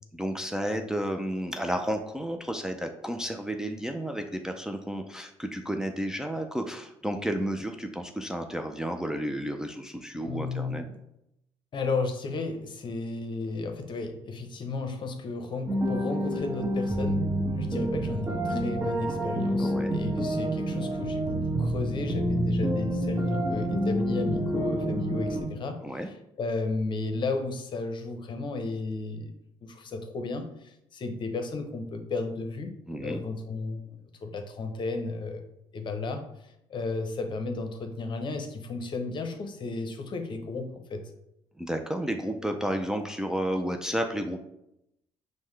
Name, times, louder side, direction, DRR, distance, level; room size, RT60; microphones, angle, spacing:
voice 1, 0.1-10.8 19.6-20.0 25.8-26.1 32.9-33.2 41.6-44.4, equal, 5° right, 4 dB, 0.4 m, -32 dB
voice 2, 10.2-11.0 11.7-17.3 17.5-29.3 29.6-32.7 33.0-35.4 35.7-36.2 36.7-41.0, left 3 dB, 45° left, 6 dB, 0.7 m, -33 dB
sound 1, 15.7-25.4, right 1 dB, 30° right, 1.0 m, -28 dB
5.4 x 2.1 x 3.2 m, 0.84 s
supercardioid pair, 75°, 11 cm